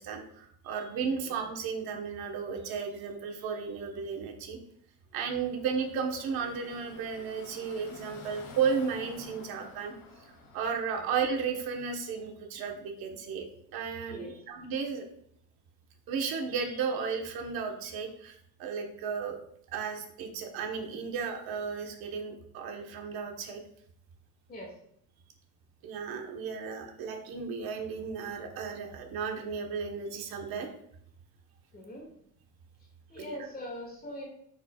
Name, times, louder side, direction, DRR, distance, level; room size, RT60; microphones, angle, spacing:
voice 1, 0.0-4.6 5.1-15.0 16.1-19.4 19.7-23.6 25.8-30.7 33.1-33.4, right 6 dB, 70° right, 2 dB, 1.2 m, -34 dB
Car passing by / Traffic noise roadway noise, 5.3-12.2, left 3 dB, 70° left, 2.0 m, -51 dB
voice 2, 31.7-32.1 33.1-34.3, equal, 25° left, -1 dB, 2.0 m, -41 dB
9.6 x 4.3 x 2.3 m, 0.69 s
cardioid pair, 165°, 37 cm